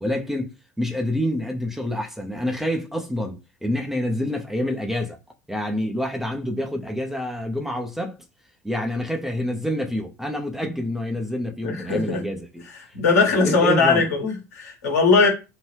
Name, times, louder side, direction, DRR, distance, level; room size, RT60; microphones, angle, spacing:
voice 1, 0.0-0.5 0.8-5.2 5.5-8.2 8.6-12.6 13.4-14.1, left 1 dB, 5° right, 0.6 m, -27 dB
voice 2, 11.6-12.2 12.9-15.3, left 4 dB, 70° left, 1.3 m, -19 dB
2.9 x 2.5 x 3.3 m
figure-of-eight pair, 65°, 9 cm